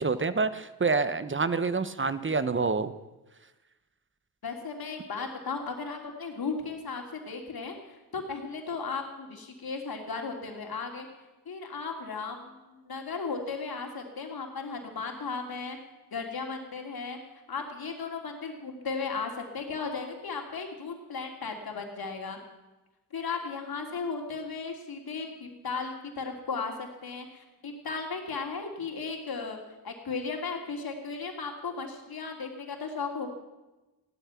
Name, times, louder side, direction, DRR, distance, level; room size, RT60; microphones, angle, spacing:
voice 1, 0.0-2.9, right 4 dB, 30° right, 14 dB, 1.1 m, -27 dB
voice 2, 4.4-11.1 11.4-15.8 16.1-17.2 17.5-22.4 23.1-29.6 29.8-33.3, left 4 dB, 60° left, 3 dB, 3.2 m, -36 dB
16.5 x 12.0 x 6.0 m, 1.1 s
supercardioid pair, 50°, 40 cm